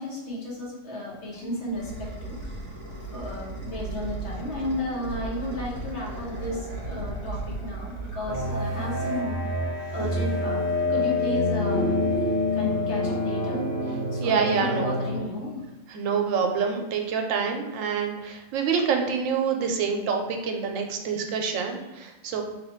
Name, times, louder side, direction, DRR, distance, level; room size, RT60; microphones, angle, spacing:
voice 1, 0.0-2.4 3.1-9.3 9.9-10.6 10.9-12.1 12.5-13.6 14.1-15.6, left 1 dB, 60° left, -4 dB, 1.3 m, -33 dB
sound 1, 1.1-9.1, right 3 dB, 30° right, 0.6 m, -36 dB
sound 2, 8.3-15.2, left 1 dB, 20° left, 0.4 m, -27 dB
voice 2, 14.2-14.9 15.9-22.4, right 6 dB, 80° right, 3 dB, 1.0 m, -26 dB
3.2 x 2.4 x 4.3 m, 1.1 s
omnidirectional pair, 1.3 m